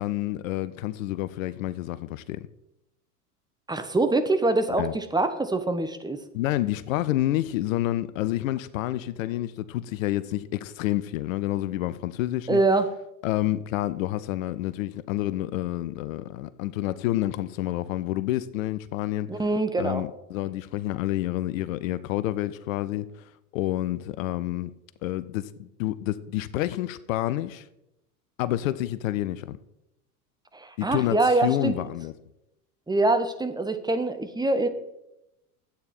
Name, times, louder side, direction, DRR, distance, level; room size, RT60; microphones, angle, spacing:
voice 1, 0.0-2.5 4.8-4.9 6.3-12.6 13.2-19.3 19.8-23.2 23.5-24.7 25.0-27.7 28.4-29.6 30.8-32.1, left 15 dB, 60° left, 0.6 m, -28 dB
voice 2, 3.7-6.2 12.5-12.9 19.3-20.0 30.5-31.7 32.9-34.7, right 2 dB, 10° right, 1.0 m, -24 dB
11.5 x 8.6 x 4.3 m
hypercardioid pair, 85°, 46 cm